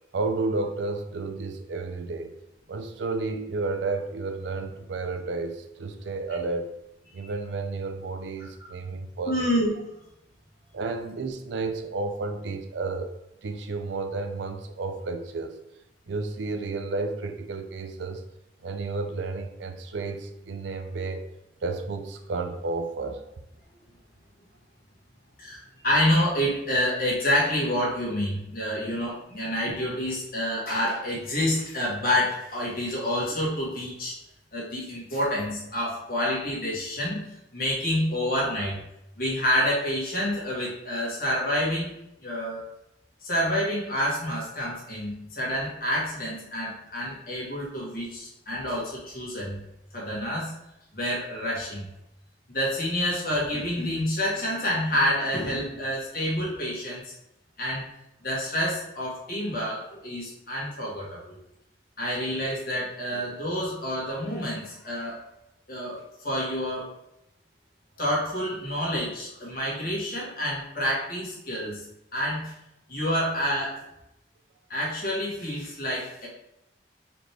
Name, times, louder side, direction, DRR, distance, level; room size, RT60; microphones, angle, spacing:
voice 1, 0.1-2.4 2.7-6.7 7.1-9.4 10.7-13.1 13.4-15.6 16.1-18.2 18.6-21.3 21.6-23.2, right 3 dB, 85° right, 7 dB, 0.4 m, -31 dB
voice 2, 9.3-9.9 25.4-34.1 34.5-38.8 39.2-41.9 42.2-42.6 43.2-49.6 49.9-50.5 50.9-51.9 52.5-57.1 57.6-57.8 58.2-61.3 62.0-65.2 65.7-66.0 66.2-66.9 68.0-71.8 72.1-72.5 72.9-73.7 74.7-76.3, equal, 50° left, -5 dB, 1.5 m, -28 dB
4.2 x 3.0 x 3.3 m, 0.84 s
head